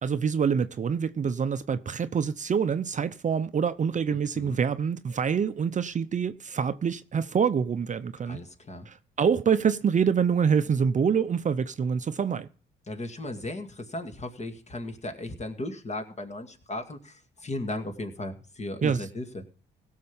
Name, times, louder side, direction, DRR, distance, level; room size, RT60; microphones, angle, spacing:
voice 1, 0.0-8.4 8.9-12.5 18.8-19.1, right 6 dB, 40° right, 0.6 m, -26 dB
voice 2, 4.1-4.6 8.3-8.9 12.9-19.4, left 2 dB, 35° left, 2.2 m, -36 dB
17.0 x 6.6 x 5.5 m
cardioid pair, 90°, 20 cm